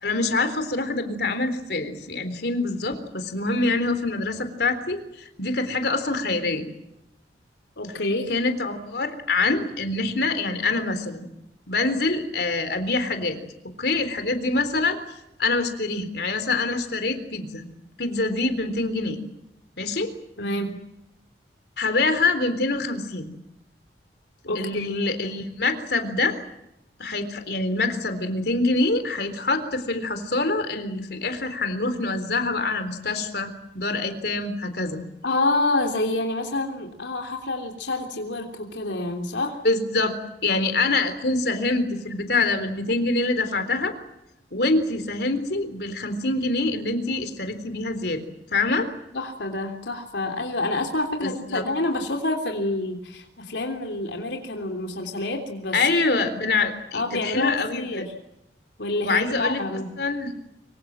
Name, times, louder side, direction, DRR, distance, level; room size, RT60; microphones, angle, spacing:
voice 1, 0.0-6.7 8.3-11.3 11.7-13.4 13.8-15.0 15.4-17.7 18.0-19.2 19.8-20.1 21.8-23.3 24.6-26.4 27.0-33.5 33.7-35.0 39.6-40.1 40.4-43.9 44.5-48.2 48.5-48.9 51.2-51.6 55.7-58.0 59.0-59.6 60.0-60.3, left 3 dB, 65° left, 8 dB, 3.8 m, -25 dB
voice 2, 7.8-8.3 20.4-20.7 24.4-24.9 35.2-39.6 49.1-55.8 56.9-58.1 58.8-59.9, left 2 dB, 85° left, 3 dB, 3.3 m, -27 dB
25.5 x 24.5 x 7.6 m, 0.86 s
head